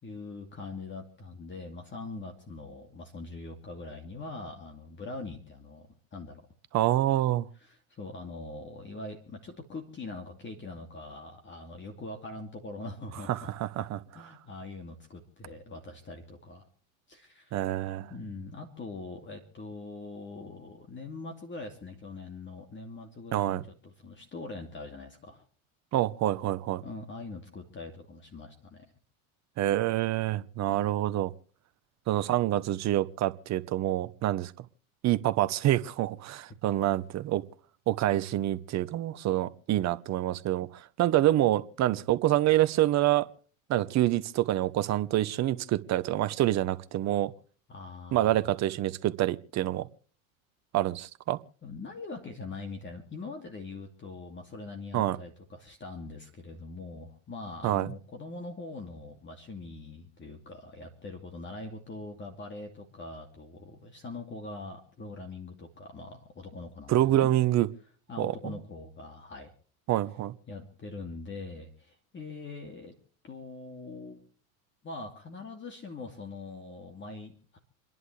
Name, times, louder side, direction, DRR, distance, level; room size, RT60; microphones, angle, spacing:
voice 1, 0.0-6.5 7.6-13.5 13.8-13.9 14.1-16.7 17.1-17.5 18.1-25.4 26.8-28.8 30.7-30.9 47.7-48.4 51.6-67.3 68.1-69.5 70.5-72.9 73.2-74.2 74.8-77.6, left 3 dB, 25° left, 3 dB, 2.6 m, -42 dB
voice 2, 6.7-7.5 13.3-14.0 17.5-18.1 23.3-23.6 25.9-26.8 29.6-31.3 32.1-34.5 35.0-37.4 37.9-43.3 43.7-47.3 48.1-49.9 50.7-51.4 54.9-55.2 57.6-57.9 66.9-67.7 68.2-68.5 69.9-70.3, right 14 dB, 40° right, 15 dB, 1.0 m, -27 dB
29.0 x 11.0 x 3.3 m, 0.43 s
hypercardioid pair, 90°, 42 cm